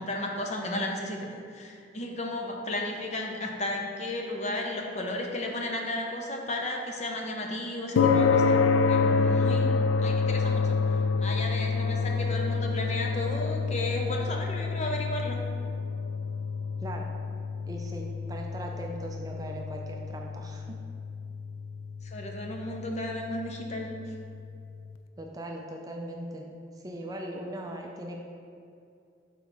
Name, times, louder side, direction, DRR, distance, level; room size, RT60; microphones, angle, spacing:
voice 1, 0.0-8.6 8.9-9.7 10.0-15.4 22.0-24.1, left 1 dB, 35° left, 1 dB, 0.7 m, -34 dB
sound 1, 8.0-24.5, left 4 dB, 90° left, 0.3 m, -28 dB
voice 2, 17.7-20.6 25.2-26.5 26.8-28.2, right 1 dB, 20° right, 1 dB, 0.4 m, -39 dB
6.2 x 4.7 x 4.0 m, 2.5 s
head